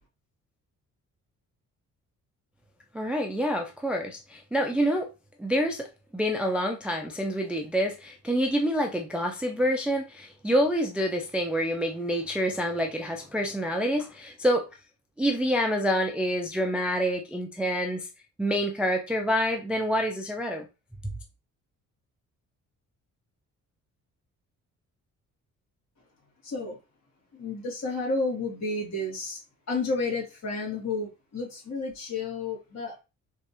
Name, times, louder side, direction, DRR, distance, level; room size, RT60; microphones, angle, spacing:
voice 1, 2.9-5.1 5.4-14.7 15.2-18.1 18.4-20.7, equal, 5° right, 0.3 m, -27 dB
voice 2, 26.4-26.8 27.3-29.4 29.7-33.0, left 3 dB, 55° left, 2.2 m, -31 dB
3.5 x 3.3 x 2.8 m
cardioid pair, 165°, 31 cm